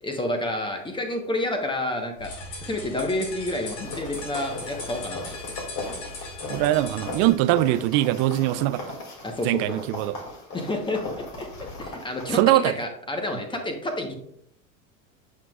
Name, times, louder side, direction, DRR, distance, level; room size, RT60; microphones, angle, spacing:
voice 1, 0.0-2.3 2.6-5.3 9.2-9.8 10.5-14.1, left 1 dB, 10° left, 1.1 m, -29 dB
sound 1, 2.2-7.3, left 2 dB, 70° left, 2.3 m, -38 dB
sound 2, 3.8-12.4, left 2 dB, 45° left, 2.5 m, -38 dB
voice 2, 6.5-8.8 9.4-10.2 12.3-12.7, right 15 dB, 55° right, 0.5 m, -22 dB
7.4 x 5.8 x 2.4 m
hypercardioid pair, 100°, 40 cm